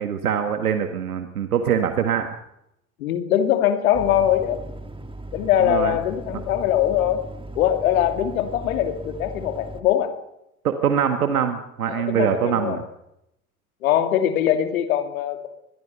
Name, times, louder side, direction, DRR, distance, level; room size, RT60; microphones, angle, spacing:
voice 1, 0.0-2.3 5.6-5.9 10.6-12.8, right 8 dB, 80° right, 7 dB, 1.7 m, -23 dB
voice 2, 3.0-4.6 5.3-7.2 7.5-10.1 11.9-12.8 13.8-15.5, left 10 dB, 70° left, 7 dB, 2.8 m, -22 dB
sound 1, 3.9-9.8, right 1 dB, 10° right, 2.4 m, -38 dB
24.0 x 22.0 x 6.8 m, 0.84 s
figure-of-eight pair, 65°, 43 cm